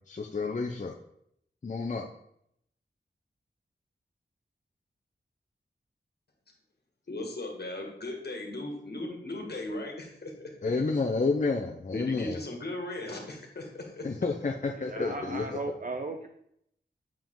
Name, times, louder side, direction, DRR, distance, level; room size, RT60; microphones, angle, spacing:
voice 1, 0.1-1.0 1.6-2.1 10.6-12.4 14.0-15.6, left 3 dB, 40° left, 2 dB, 0.6 m, -30 dB
voice 2, 7.1-10.5 11.9-14.1, left 1 dB, 60° left, 2 dB, 1.6 m, -37 dB
voice 3, 14.8-16.3, right 3 dB, 45° right, 4 dB, 0.6 m, -36 dB
7.3 x 4.9 x 3.8 m, 0.72 s
wide cardioid pair, 65°, 19 cm